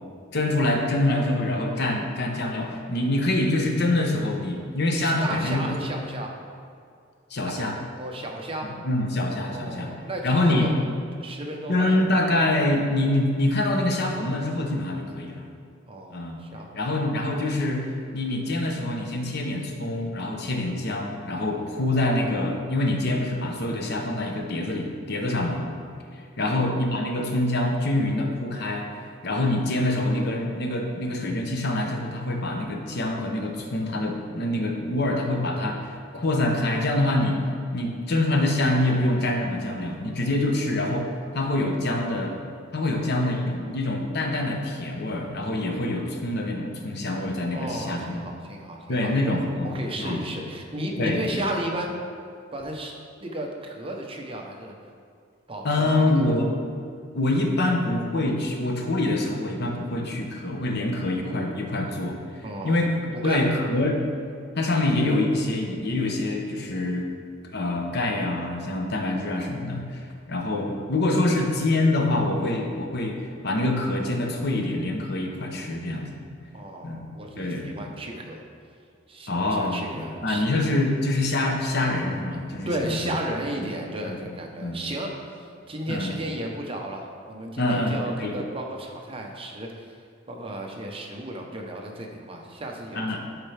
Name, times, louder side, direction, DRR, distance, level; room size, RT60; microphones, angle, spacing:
voice 1, 0.3-5.7 7.3-7.8 8.8-9.9 10.2-10.7 11.7-15.5 16.1-16.4 16.7-25.6 26.4-28.8 29.2-37.4 37.7-42.4 42.7-48.3 48.9-49.7 50.0-50.2 51.0-51.4 55.6-56.6 57.1-62.2 62.6-64.0 64.6-67.1 67.4-70.0 70.3-76.1 76.8-77.1 77.4-77.7 79.3-79.8 80.2-83.0 84.0-84.3 84.6-84.8 85.9-86.1 87.6-88.4 92.9-93.2, left 1 dB, 60° left, 2 dB, 0.9 m, -25 dB
voice 2, 4.9-6.3 7.5-7.7 8.0-8.7 9.4-10.9 11.2-12.1 15.9-17.0 26.5-26.6 42.9-43.8 47.5-52.0 52.5-52.9 53.2-54.7 55.5-56.4 62.4-62.8 63.1-63.4 76.5-78.4 79.1-80.4 82.7-90.0 90.3-93.2, right 1 dB, 30° right, 1 dB, 0.8 m, -34 dB
12.0 x 4.4 x 3.4 m, 2.3 s
head